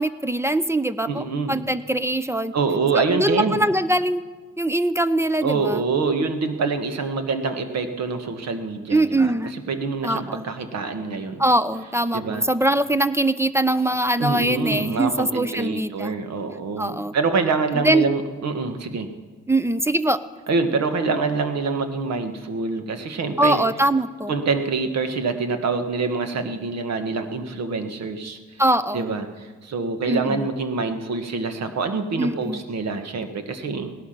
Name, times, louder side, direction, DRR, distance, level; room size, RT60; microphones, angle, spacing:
voice 1, 0.0-2.5 3.0-4.2 4.6-5.8 8.9-9.5 10.0-10.4 11.4-16.1 16.8-17.1 17.8-18.1 19.5-20.2 23.4-24.3 28.6-29.1 30.1-30.4 32.2-32.6, right 1 dB, 10° right, 14 dB, 0.5 m, -22 dB
voice 2, 1.1-1.7 2.5-3.6 5.4-11.4 12.1-12.5 14.2-19.1 20.5-23.6 24.3-28.6 28.9-34.0, right 4 dB, 60° right, 8 dB, 1.6 m, -25 dB
17.5 x 12.0 x 5.9 m, 1.4 s
cardioid pair, 90°, 30 cm